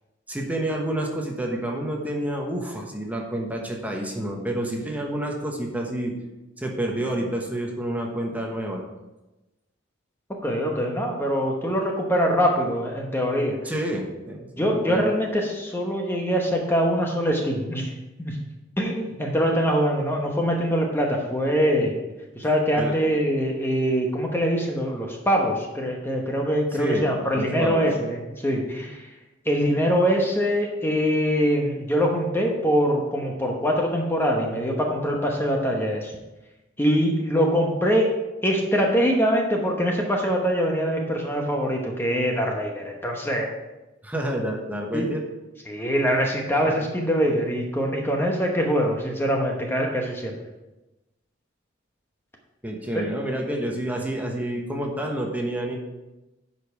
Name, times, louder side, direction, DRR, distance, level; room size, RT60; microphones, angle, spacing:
voice 1, 0.3-6.1 6.6-8.8 13.6-15.1 22.7-22.9 26.7-27.1 27.3-27.9 44.0-45.2 46.7-46.8 52.6-55.8, right 1 dB, 10° right, 0 dB, 1.1 m, -29 dB
voice 2, 10.3-13.6 14.6-17.9 18.2-18.4 18.8-22.0 22.3-29.1 29.5-36.1 36.8-38.1 38.4-43.5 44.9-45.1 45.7-50.4 52.9-53.0, equal, 10° left, 0 dB, 1.0 m, -23 dB
10.5 x 5.3 x 4.9 m, 1.0 s
head